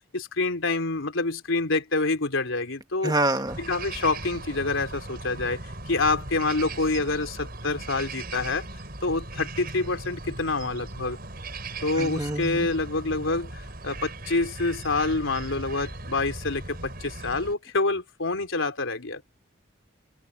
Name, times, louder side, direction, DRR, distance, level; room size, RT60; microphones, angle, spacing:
voice 1, 0.1-3.1 3.6-5.6 5.9-8.7 9.0-11.2 11.8-19.2, left 3 dB, 85° left, 3.4 m, -27 dB
voice 2, 3.0-3.6 12.0-12.7, right 2 dB, 20° right, 1.9 m, -26 dB
sound 1, 3.5-17.5, right 2 dB, 50° right, 6.2 m, -38 dB
head